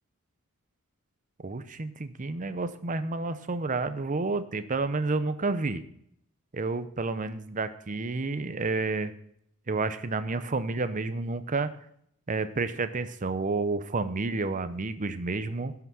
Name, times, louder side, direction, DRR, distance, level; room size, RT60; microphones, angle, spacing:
voice 1, 1.4-5.8 6.5-9.1 9.7-11.7 12.3-15.7, right 3 dB, 35° right, 12 dB, 0.7 m, -30 dB
12.5 x 5.9 x 6.2 m, 0.70 s
head